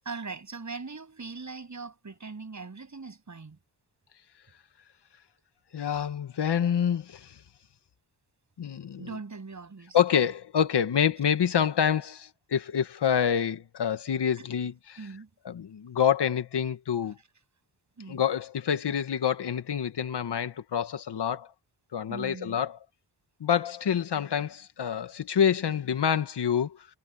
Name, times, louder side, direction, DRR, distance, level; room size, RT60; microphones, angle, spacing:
voice 1, 0.0-3.6 9.0-10.0 14.4-14.5 15.0-15.3 18.0-18.2 22.1-22.6, right 4 dB, 40° right, 7.8 m, -40 dB
voice 2, 5.7-7.4 8.6-9.1 9.9-15.1 15.4-17.2 18.1-21.5 21.9-22.8 23.4-26.9, left 8 dB, 65° left, 1.7 m, -27 dB
cardioid pair, 85°, 43 cm